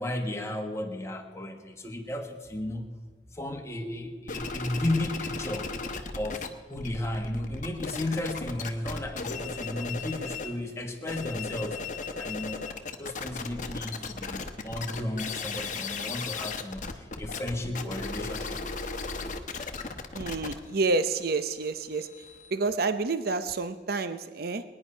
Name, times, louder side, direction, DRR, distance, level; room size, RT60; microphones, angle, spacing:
voice 1, 0.0-2.9 3.3-5.7 6.1-11.8 12.2-12.6 13.0-18.9, left 1 dB, 15° left, 3 dB, 1.3 m, -34 dB
sound 1, 4.3-6.5 6.7-10.6 10.9-22.5, left 4 dB, 45° left, 1.0 m, -36 dB
voice 2, 20.1-22.1 22.5-24.6, right 3 dB, 55° right, 10 dB, 0.6 m, -29 dB
20.5 x 9.9 x 5.5 m, 1.5 s
head